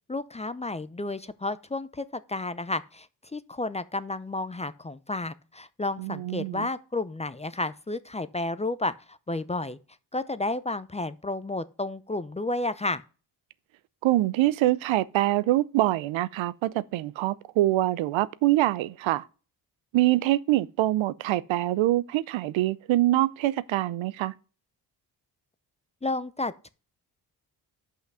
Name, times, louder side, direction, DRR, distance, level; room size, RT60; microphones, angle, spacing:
voice 1, 0.1-3.1 3.3-9.8 10.1-13.0 26.0-26.7, left 2 dB, 15° left, 0.5 m, -31 dB
voice 2, 6.0-6.7 14.0-19.2 19.9-24.3, right 16 dB, 75° right, 0.6 m, -24 dB
5.7 x 5.6 x 6.2 m
supercardioid pair, 55°, 47 cm